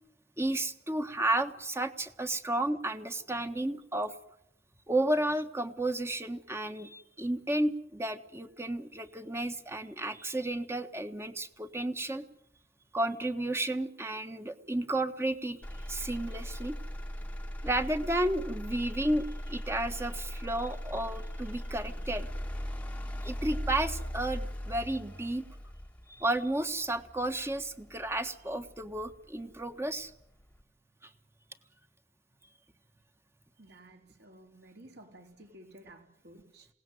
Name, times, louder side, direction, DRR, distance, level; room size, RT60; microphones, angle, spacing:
voice 1, 0.4-4.1 4.9-12.2 12.9-16.8 17.6-22.3 23.2-25.4 26.2-30.1 31.0-31.1, right 1 dB, 15° right, 8 dB, 1.5 m, -32 dB
Motor vehicle (road), 15.6-29.6 30.1-30.6, equal, 10° left, 1.3 m, -39 dB
voice 2, 33.6-36.7, right 1 dB, 60° right, 3 dB, 4.6 m, -54 dB
27.5 x 18.5 x 9.3 m, 0.80 s
head